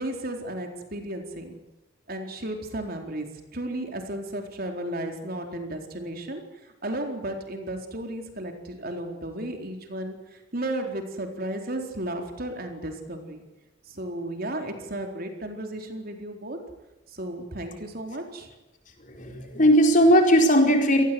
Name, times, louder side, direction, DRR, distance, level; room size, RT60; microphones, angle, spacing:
voice 1, 0.0-1.6 2.1-13.4 13.9-16.6 17.1-18.5, right 1 dB, 50° right, 4 dB, 4.2 m, -34 dB
voice 2, 19.1-21.0, equal, 40° left, 3 dB, 4.8 m, -18 dB
27.5 x 19.5 x 7.9 m, 0.99 s
head